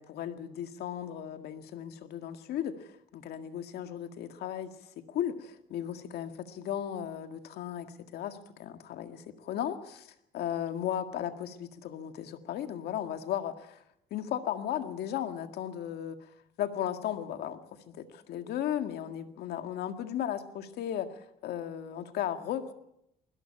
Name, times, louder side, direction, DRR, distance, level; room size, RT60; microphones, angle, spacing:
voice 1, 0.0-7.9 8.1-13.8 14.1-16.3 16.6-17.6 17.9-22.7, left 10 dB, 70° left, 7 dB, 2.0 m, -36 dB
20.5 x 17.0 x 8.8 m, 0.81 s
cardioid pair, 110°, 17 cm